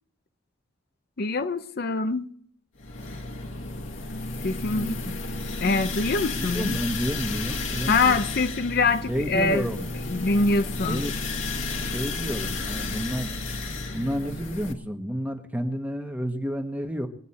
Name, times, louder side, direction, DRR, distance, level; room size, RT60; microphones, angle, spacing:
voice 1, 1.2-2.3 4.4-5.0 5.6-6.8 7.9-9.7 10.1-11.1, left 3 dB, 50° left, 0.7 m, -24 dB
sound 1, 2.8-14.7, left 3 dB, 65° left, 1.7 m, -32 dB
voice 2, 4.8-5.5 6.4-8.2 9.1-9.9 10.9-11.2 11.8-13.3 13.9-17.1, equal, 10° right, 1.2 m, -30 dB
22.0 x 9.3 x 4.2 m
head